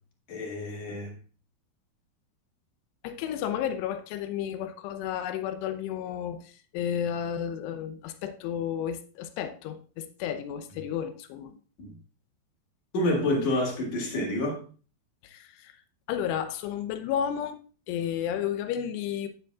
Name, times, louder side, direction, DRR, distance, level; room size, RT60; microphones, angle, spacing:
voice 1, 0.3-1.2 11.8-12.0 12.9-14.6, left 1 dB, 50° left, 2.8 m, -28 dB
voice 2, 3.0-11.5 15.2-15.7 16.1-17.6 17.9-19.3, left 9 dB, 85° left, 2.9 m, -32 dB
10.0 x 9.3 x 2.3 m
omnidirectional pair, 4.7 m